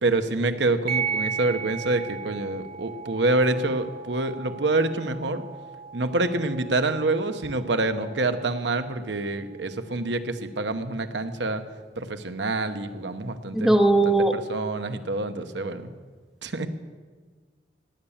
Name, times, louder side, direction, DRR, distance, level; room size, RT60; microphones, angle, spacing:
voice 1, 0.0-5.4 5.9-11.6 12.0-13.8 14.0-15.9 16.4-16.7, right 2 dB, 75° right, 9 dB, 1.0 m, -26 dB
sound 1, 0.9-9.9, right 6 dB, 55° right, 2.1 m, -36 dB
voice 2, 13.5-14.4, right 2 dB, ahead, 5 dB, 0.9 m, -19 dB
17.0 x 7.3 x 9.9 m, 1.5 s
head